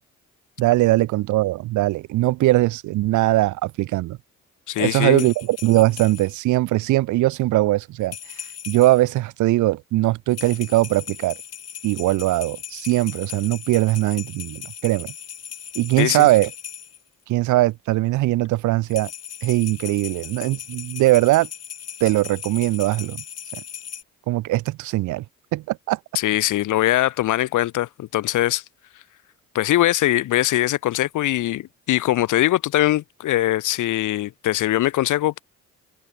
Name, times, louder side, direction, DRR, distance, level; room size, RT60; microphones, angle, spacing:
voice 1, 0.6-4.2 4.8-8.1 8.7-11.4 11.8-15.1 15.8-16.5 17.3-19.1 19.4-21.5 22.0-23.2 23.5-23.6 24.3-25.2 25.5-26.0, right 17 dB, 75° right, 0.5 m, -20 dB
voice 2, 4.7-5.3 16.0-16.3 26.2-28.6 29.5-35.4, left 14 dB, 80° left, 2.0 m, -21 dB
sound 1, 5.1-6.4 8.0-9.1 10.3-17.0 18.9-24.0, left 9 dB, 55° left, 3.0 m, -38 dB
cardioid pair, 90°, 30 cm